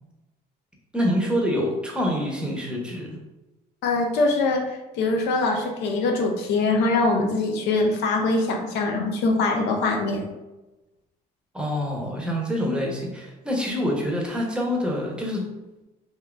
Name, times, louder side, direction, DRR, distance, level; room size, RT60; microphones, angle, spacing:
voice 1, 0.9-3.2 11.5-15.5, equal, 5° right, -2 dB, 0.7 m, -26 dB
voice 2, 3.8-10.3, left 3 dB, 85° left, 3 dB, 0.5 m, -23 dB
3.5 x 2.7 x 2.3 m, 1.0 s
cardioid pair, 110°, 17 cm